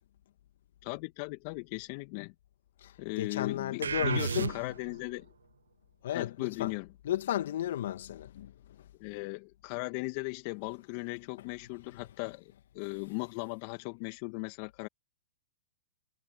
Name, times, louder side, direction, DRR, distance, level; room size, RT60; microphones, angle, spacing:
voice 1, 0.8-2.3 3.0-5.3 6.1-6.9 9.0-14.9, left 29 dB, 45° left, 2.2 m, -38 dB
voice 2, 3.2-4.7 6.0-6.7 7.1-8.5, left 12 dB, 65° left, 2.2 m, -33 dB
sound 1, 3.8-5.0, right 6 dB, 80° right, 0.6 m, -32 dB
hypercardioid pair, 115°, 0 cm